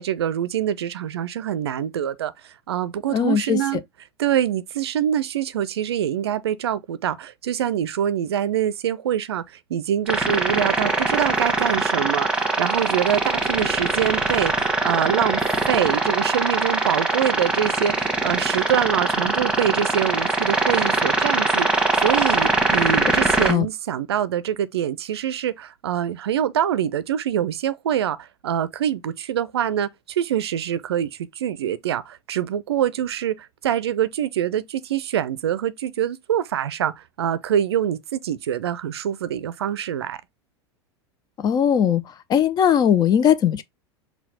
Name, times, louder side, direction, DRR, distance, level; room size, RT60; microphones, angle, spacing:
voice 1, 0.0-3.8 4.2-9.4 9.7-15.4 15.7-40.2, right 10 dB, 65° right, 0.5 m, -25 dB
voice 2, 3.1-3.6 23.5-23.7 41.4-42.0 42.3-43.6, left 9 dB, 30° left, 0.5 m, -19 dB
sound 1, 10.1-23.5, right 2 dB, 5° right, 1.3 m, -22 dB
5.7 x 2.3 x 4.0 m
figure-of-eight pair, 80°, 14 cm